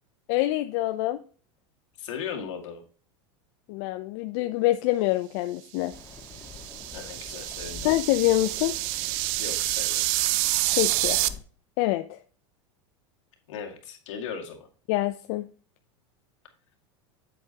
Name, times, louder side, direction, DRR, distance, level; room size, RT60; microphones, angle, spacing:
voice 1, 0.3-1.2 3.7-5.9 7.8-8.8 10.8-11.2 11.8-12.2 14.9-15.5, left 16 dB, 60° left, 9 dB, 0.6 m, -25 dB
voice 2, 2.0-2.8 6.9-7.9 9.4-10.0 13.5-14.7, left 7 dB, 80° left, 2 dB, 2.1 m, -37 dB
Rain, 5.9-11.4, left 4 dB, 15° left, 2.3 m, -45 dB
sound 1, 6.2-11.3, right 17 dB, 55° right, 0.5 m, -28 dB
8.0 x 8.0 x 2.9 m, 0.40 s
hypercardioid pair, 110°, 16 cm